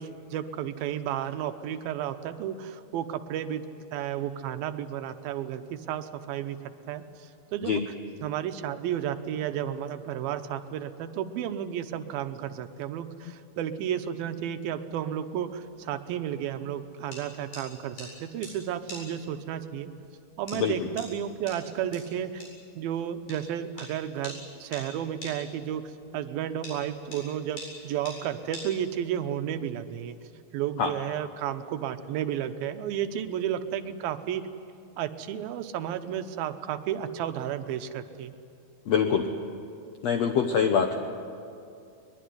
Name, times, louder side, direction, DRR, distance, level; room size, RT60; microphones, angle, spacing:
voice 1, 0.0-3.7 3.9-7.8 8.2-19.9 20.4-22.4 22.8-25.9 26.1-30.2 30.5-34.5 35.0-38.4, right 10 dB, 80° right, 9 dB, 2.7 m, -32 dB
sound 1, 15.4-29.3, left 1 dB, 55° left, 9.4 m, -46 dB
voice 2, 20.5-20.9 30.8-30.9 38.9-39.3 40.0-41.0, left 7 dB, 75° left, 5 dB, 1.5 m, -24 dB
22.0 x 21.5 x 9.6 m, 2.5 s
omnidirectional pair, 4.3 m